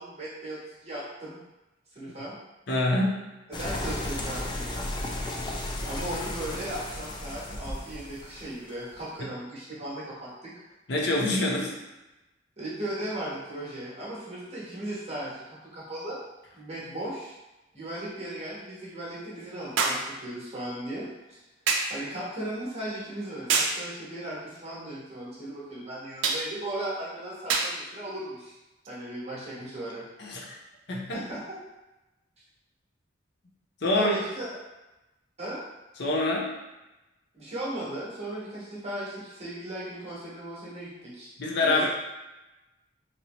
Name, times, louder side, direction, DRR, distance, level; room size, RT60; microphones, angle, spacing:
voice 1, 0.0-1.4 1.9-2.3 3.5-4.9 5.8-10.5 12.6-16.2 16.5-17.3 17.7-21.4 21.9-28.6 28.9-30.0 31.1-31.4 33.9-34.5 35.4-35.6 37.3-41.3 41.6-41.9, right 1 dB, 35° right, -7 dB, 1.0 m, -37 dB
voice 2, 2.7-3.2 9.2-9.3 10.9-11.8 30.2-30.6 30.9-31.2 33.8-34.2 36.0-36.5 41.4-41.9, left 2 dB, 60° left, -2 dB, 0.6 m, -26 dB
sound 1, 3.5-9.0, left 1 dB, 25° left, 0.3 m, -34 dB
sound 2, 16.0-16.1 19.8-20.1 21.7-22.0 23.5-23.8 26.2-26.5 27.5-27.8 28.8-29.0, right 4 dB, 80° right, 0.4 m, -26 dB
3.0 x 2.7 x 3.0 m, 1.0 s
head